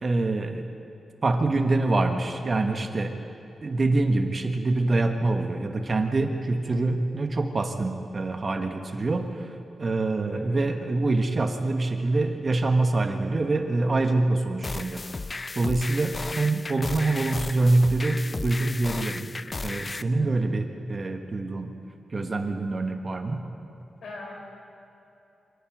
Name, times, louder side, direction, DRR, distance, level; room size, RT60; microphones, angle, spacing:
voice 1, 0.0-0.7 1.2-3.2 3.6-9.5 9.8-15.1 15.5-19.3 19.6-21.8 22.1-23.4, right 2 dB, 35° right, 6 dB, 1.4 m, -25 dB
voice 2, 10.2-10.7 20.1-20.3 24.0-24.3, left 2 dB, 65° left, 0 dB, 4.9 m, -41 dB
sound 1, 14.6-20.0, left 3 dB, 30° left, 0.4 m, -34 dB
26.0 x 11.0 x 9.2 m, 2.9 s
wide cardioid pair, 135°, 0 cm